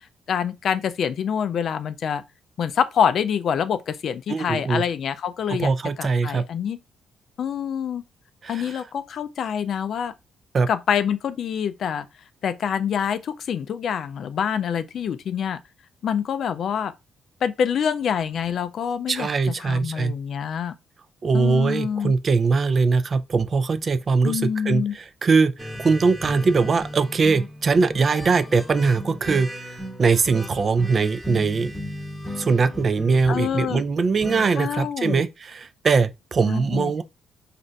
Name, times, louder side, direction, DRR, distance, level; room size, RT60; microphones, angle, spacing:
voice 1, 0.3-2.2 2.6-5.7 6.0-6.8 7.4-8.0 8.5-10.1 10.7-12.1 12.4-15.6 16.0-16.9 17.4-19.3 19.6-20.7 21.3-22.1 24.2-24.9 33.3-33.8 34.6-35.2 36.5-37.0, left 8 dB, 60° left, 0.3 m, -26 dB
voice 2, 4.3-4.8 5.6-6.4 8.4-8.8 10.5-10.7 19.1-20.1 21.2-31.7 32.4-37.0, right 4 dB, 40° right, 0.3 m, -21 dB
sound 1, 25.6-34.6, equal, ahead, 0.8 m, -35 dB
2.5 x 2.2 x 3.8 m
cardioid pair, 90°, 0 cm